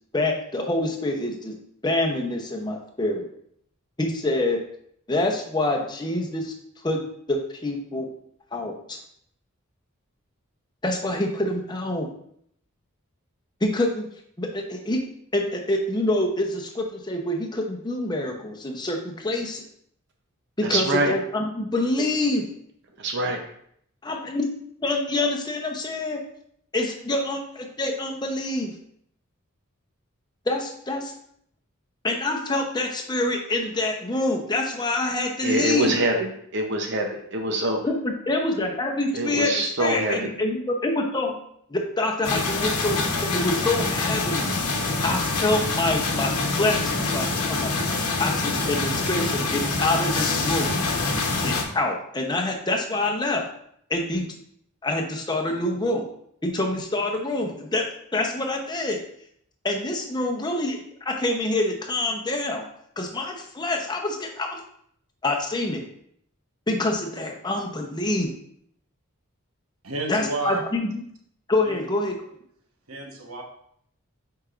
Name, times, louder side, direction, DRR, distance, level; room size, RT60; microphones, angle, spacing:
voice 1, 0.1-1.6 1.8-3.2 4.0-4.6 5.1-6.5 6.8-7.0 7.3-8.1 8.5-9.0 10.8-12.1 13.6-14.1 14.4-15.0 15.3-19.6 20.6-22.5 24.0-24.5 24.8-26.2 26.7-28.7 30.5-31.1 32.0-36.0 37.8-41.4 41.7-44.5 45.0-47.7 48.2-50.8 51.4-53.4 53.9-54.3 54.8-56.0 56.4-57.8 58.1-59.0 59.6-62.7 63.0-64.6 65.2-65.8 66.7-68.3 70.1-70.9 71.5-72.2, left 2 dB, 20° left, 2 dB, 0.7 m, -26 dB
voice 2, 20.6-21.1 23.0-23.4 35.4-37.8 39.1-40.3, right 1 dB, 55° right, 3 dB, 0.7 m, -25 dB
sound 1, 42.2-51.6, left 3 dB, 90° left, 1.0 m, -25 dB
voice 3, 69.8-70.6 71.6-71.8 72.9-73.4, right 2 dB, 75° right, 1 dB, 1.2 m, -31 dB
7.9 x 4.8 x 2.5 m, 0.69 s
head